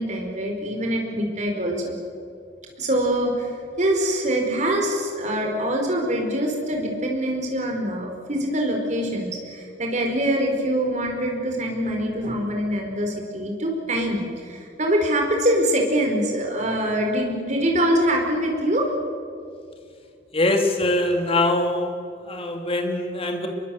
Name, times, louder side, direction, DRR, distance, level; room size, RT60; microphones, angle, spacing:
voice 1, 0.0-1.9 2.8-3.5 3.8-18.9, right 1 dB, 40° right, 1 dB, 5.1 m, -24 dB
voice 2, 20.3-22.0 22.3-23.5, left 2 dB, 30° left, 3 dB, 2.9 m, -23 dB
26.0 x 23.0 x 8.1 m, 2.3 s
head